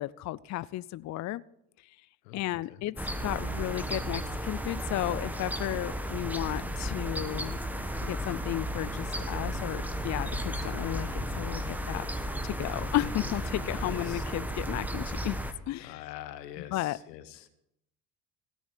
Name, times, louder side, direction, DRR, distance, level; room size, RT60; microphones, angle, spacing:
voice 1, 0.0-1.4 2.3-2.9 3.2-7.6 8.0-11.1 11.4-12.0 12.4-15.4 15.7-16.0 16.7-17.0, left 15 dB, 40° left, 19 dB, 0.4 m, -33 dB
voice 2, 2.2-2.8 13.5-14.2 15.8-17.5, left 12 dB, 85° left, 12 dB, 1.2 m, -45 dB
sound 1, 3.0-15.5, equal, 5° right, 1.4 m, -34 dB
17.0 x 6.2 x 7.2 m, 0.79 s
hypercardioid pair, 70°, 47 cm